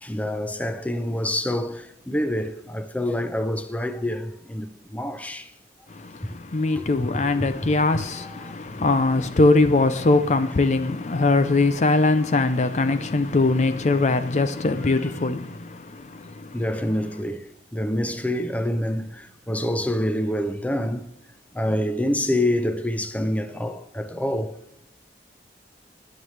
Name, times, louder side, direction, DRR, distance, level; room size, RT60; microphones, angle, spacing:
voice 1, 0.0-5.5 6.7-8.5 15.0-15.1 16.5-17.5 17.7-21.1 21.5-24.6, left 1 dB, 10° left, 0.7 m, -27 dB
voice 2, 5.9-16.6, left 3 dB, 40° left, 0.5 m, -21 dB
20.5 x 7.3 x 3.3 m
head